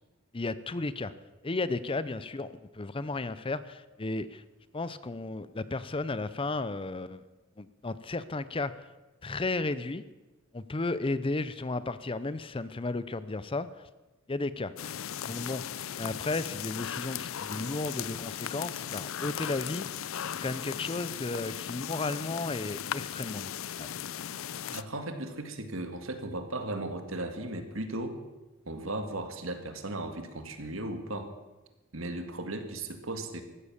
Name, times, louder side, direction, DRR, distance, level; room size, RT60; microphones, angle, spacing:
voice 1, 0.3-1.1 1.4-4.4 4.7-7.2 7.6-8.9 9.2-10.0 10.5-13.9 14.3-14.7 15.3-15.6 16.0-19.9 20.4-23.5 23.8-23.9, left 2 dB, 25° left, 15 dB, 0.6 m, -34 dB
sound 1, 14.8-24.8, left 9 dB, 90° left, 0.5 m, -37 dB
voice 2, 24.7-28.2 28.7-31.3 31.9-33.4, right 2 dB, 85° right, 7 dB, 1.9 m, -36 dB
15.0 x 12.5 x 7.2 m, 1.1 s
head